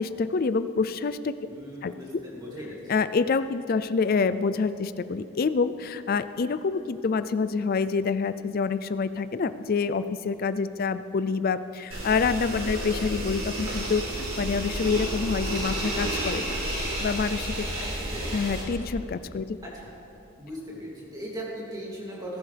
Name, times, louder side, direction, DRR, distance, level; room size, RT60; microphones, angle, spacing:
voice 1, 0.0-1.4 1.8-1.9 2.9-17.9 18.3-19.6, left 5 dB, 40° left, 13 dB, 0.3 m, -27 dB
voice 2, 1.5-2.8 18.0-18.3 19.7-19.9 20.4-22.4, equal, 15° right, -5 dB, 2.6 m, -38 dB
sound 1, 11.9-18.6, right 1 dB, 75° right, 3.2 m, -31 dB
18.5 x 11.0 x 3.4 m, 2.9 s
head